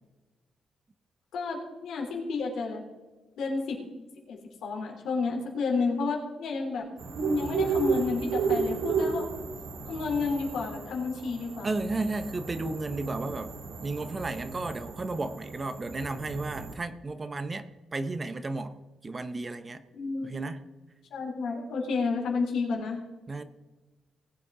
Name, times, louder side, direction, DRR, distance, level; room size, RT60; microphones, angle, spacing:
voice 1, 1.3-2.8 3.4-3.8 4.3-6.8 7.3-9.3 9.9-11.7 19.9-20.4 21.1-23.0, left 4 dB, 85° left, 0 dB, 3.3 m, -31 dB
sound 1, 7.0-16.7, right 5 dB, 85° right, 2.6 m, -33 dB
voice 2, 11.6-13.5 13.8-18.7 19.0-19.8 20.2-20.6 23.3-23.4, right 2 dB, 25° right, 11 dB, 0.7 m, -33 dB
19.5 x 8.2 x 3.7 m, 1.2 s
wide cardioid pair, 160°, 0 cm